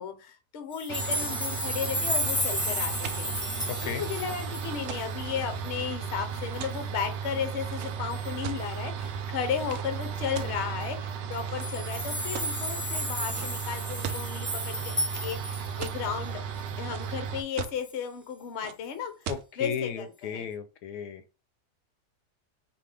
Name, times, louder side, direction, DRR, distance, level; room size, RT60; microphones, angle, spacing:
voice 1, 0.0-14.9 15.2-16.4 16.8-19.1 19.6-20.5, left 7 dB, 55° left, 8 dB, 0.8 m, -34 dB
sound 1, 0.7-5.2 5.6-5.7 6.1-6.2 6.5-7.0 8.1-8.3 10.0-10.1 10.4-10.5 11.3-16.2 16.7-16.8, left 1 dB, 5° left, 1.1 m, -33 dB
sound 2, 0.9-17.4, right 7 dB, 90° right, 1.3 m, -35 dB
sound 3, 2.9-8.9 9.6-9.9 10.3-11.0 11.5-11.9 12.3-12.7 13.3-13.5 13.8-14.3 15.1-16.0 16.5-17.2 17.6-18.0 18.6-18.7 19.2-19.4, right 9 dB, 75° right, 0.7 m, -40 dB
voice 2, 3.7-4.0 19.3-21.2, left 7 dB, 75° left, 9 dB, 1.1 m, -34 dB
4.3 x 2.9 x 3.4 m, 0.31 s
omnidirectional pair, 1.8 m